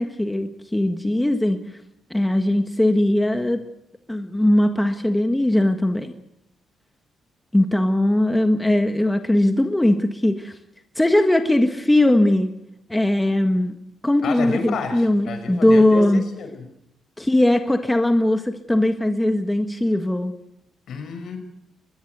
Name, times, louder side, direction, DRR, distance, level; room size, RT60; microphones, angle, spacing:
voice 1, 0.0-1.6 2.1-3.6 4.1-6.1 7.5-10.5 10.9-12.5 12.9-13.7 14.0-16.2 17.2-20.3, left 1 dB, 10° left, 6 dB, 1.6 m, -19 dB
voice 2, 14.2-16.6 20.9-21.4, left 5 dB, 65° left, 7 dB, 6.4 m, -30 dB
21.5 x 21.0 x 8.2 m, 0.81 s
cardioid pair, 95°, 0 cm